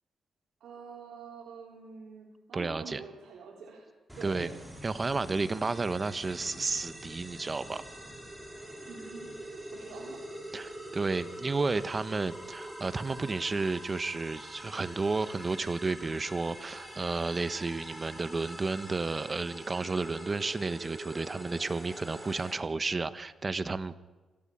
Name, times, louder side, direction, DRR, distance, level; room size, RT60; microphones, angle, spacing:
voice 1, 0.6-3.8 4.2-4.5 8.9-10.2, right 5 dB, 75° right, -2 dB, 4.0 m, -46 dB
voice 2, 2.5-3.0 4.2-4.5 4.8-7.8 10.5-24.0, right 3 dB, 30° right, 14 dB, 1.1 m, -32 dB
sound 1, 4.1-22.5, right 1 dB, 5° right, 5.5 m, -44 dB
26.5 x 14.5 x 8.9 m, 1.3 s
cardioid pair, 85°, 0 cm